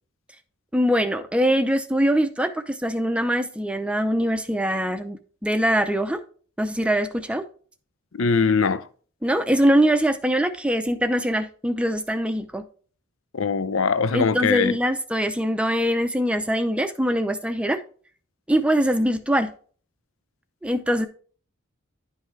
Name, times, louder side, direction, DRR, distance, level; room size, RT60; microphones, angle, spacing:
voice 1, 0.7-6.2 6.6-7.4 9.2-12.6 14.1-17.8 18.5-19.5 20.6-21.1, equal, 5° right, 0.6 m, -23 dB
voice 2, 8.1-8.8 13.3-14.8, left 5 dB, 65° left, 0.6 m, -21 dB
11.0 x 5.7 x 3.2 m
head